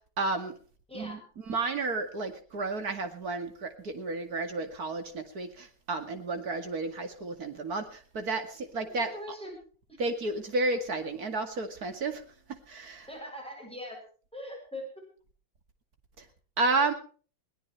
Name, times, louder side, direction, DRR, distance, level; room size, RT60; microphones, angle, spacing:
voice 1, 0.2-0.5 0.9-1.2 1.5-9.1 10.0-12.2 12.7-13.1 16.6-16.9, right 3 dB, 50° right, 6 dB, 2.6 m, -31 dB
voice 2, 0.9-1.2 9.0-9.6 13.1-14.0 14.3-14.9, left 1 dB, 5° left, 0 dB, 7.3 m, -41 dB
21.5 x 17.0 x 3.2 m, 0.41 s
omnidirectional pair, 2.1 m